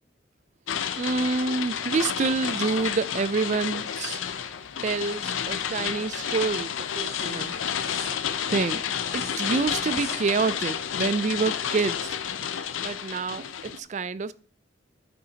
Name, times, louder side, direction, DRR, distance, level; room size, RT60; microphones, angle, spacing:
sound 1, 0.7-13.8, left 8 dB, 85° left, 0.5 m, -30 dB
voice 1, 1.0-4.2 4.8-7.5 8.5-8.8 9.1-12.1 12.8-14.3, right 4 dB, 35° right, 0.3 m, -27 dB
sound 2, 5.6-12.1, left 2 dB, 15° left, 1.7 m, -46 dB
12.5 x 5.6 x 2.8 m
head